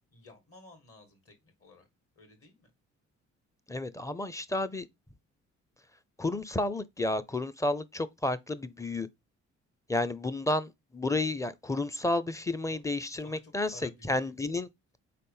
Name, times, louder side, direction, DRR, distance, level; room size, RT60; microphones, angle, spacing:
voice 1, 0.1-1.9 2.2-2.7 12.7-12.8 13.2-14.4, left 3 dB, 50° left, 2.5 m, -54 dB
voice 2, 3.7-4.9 6.2-9.1 9.9-14.7, left 2 dB, 10° left, 0.6 m, -31 dB
4.2 x 4.2 x 5.5 m
cardioid pair, 90°, 30 cm